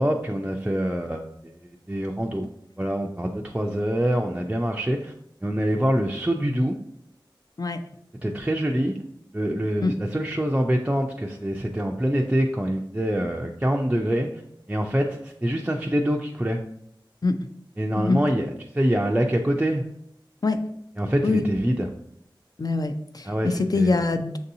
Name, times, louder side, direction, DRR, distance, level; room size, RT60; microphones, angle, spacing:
voice 1, 0.0-1.5 1.9-2.5 2.8-5.1 5.4-6.8 8.2-8.9 9.3-14.4 14.7-16.6 17.8-19.9 21.0-21.9 23.2-24.0, equal, 15° right, 1 dB, 0.4 m, -25 dB
voice 2, 22.6-24.4, left 3 dB, 50° left, 8 dB, 0.4 m, -23 dB
6.0 x 2.7 x 2.7 m, 0.72 s
wide cardioid pair, 40°, 9 cm